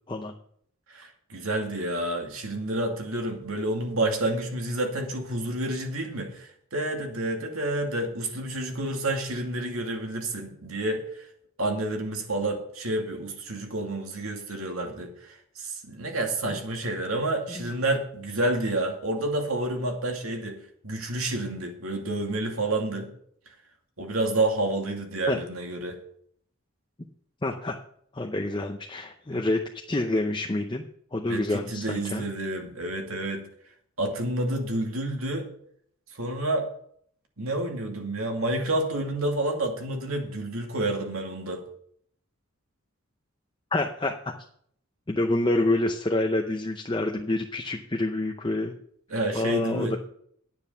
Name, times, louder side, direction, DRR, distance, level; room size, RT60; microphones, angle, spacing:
voice 1, 0.9-11.0 11.6-15.3 15.6-20.6 20.8-23.1 24.0-26.0 31.3-33.4 34.0-35.5 36.2-36.7 37.4-41.6 49.1-50.0, right 1 dB, 80° right, 2 dB, 2.5 m, -29 dB
voice 2, 27.4-27.8 28.1-30.8 31.1-32.3 43.7-44.3 45.1-48.8 49.3-50.0, left 2 dB, 20° left, 3 dB, 0.6 m, -27 dB
10.5 x 9.1 x 5.6 m, 0.65 s
head